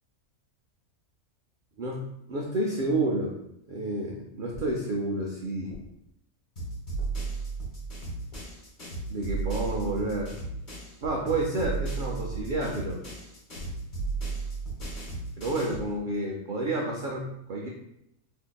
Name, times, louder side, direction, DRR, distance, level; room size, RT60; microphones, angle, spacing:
voice 1, 1.8-3.3 3.7-5.8 9.1-10.3 11.0-13.1 15.4-17.7, right 2 dB, 85° right, -2 dB, 0.4 m, -30 dB
sound 1, 4.5-5.0 5.7-6.1 7.0-7.4 8.3-8.8 9.6-10.1 11.0-11.6 12.3-12.8 13.5-14.1 14.8-15.2, left 2 dB, 85° left, 1.4 m, -46 dB
sound 2, 6.6-11.0 11.3-15.9, right 3 dB, 40° left, 1.0 m, -35 dB
4.3 x 2.7 x 2.2 m, 0.79 s
omnidirectional pair, 1.5 m